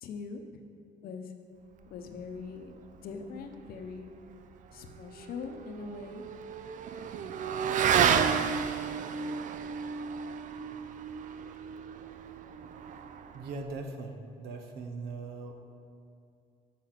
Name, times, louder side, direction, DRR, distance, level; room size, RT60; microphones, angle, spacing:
voice 1, 0.0-0.6 1.0-1.3 1.9-4.1 4.7-6.2, left 5 dB, 60° left, 6 dB, 0.8 m, -42 dB
Motorcycle / Accelerating revving vroom, 4.9-13.7, right 7 dB, 50° right, 0.4 m, -32 dB
voice 2, 13.3-15.5, right 3 dB, 75° right, 5 dB, 0.9 m, -40 dB
6.7 x 5.6 x 5.8 m, 2.4 s
cardioid pair, 110°, 17 cm